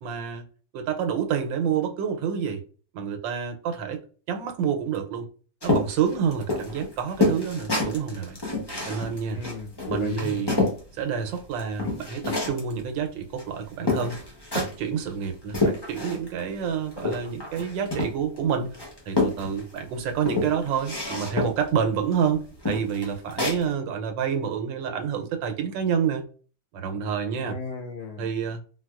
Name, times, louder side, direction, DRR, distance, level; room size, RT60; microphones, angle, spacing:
voice 1, 0.0-0.4 0.7-2.6 2.9-4.0 4.3-5.3 5.6-8.4 8.9-9.4 9.9-10.5 10.9-14.2 14.5-18.8 19.1-26.2 26.7-27.6 28.2-28.7, right 7 dB, 90° right, 1.3 m, -28 dB
sound 1, 5.6-10.8 11.2-12.7 13.4-13.5 13.9-14.9 15.2-16.4 16.6-18.4 18.7-19.8 20.2-21.7 22.1-22.3 22.6-23.6, left 2 dB, 30° left, 0.4 m, -28 dB
voice 2, 9.2-10.6 27.4-28.3, left 4 dB, 75° left, 1.2 m, -36 dB
4.1 x 2.2 x 2.3 m
omnidirectional pair, 2.0 m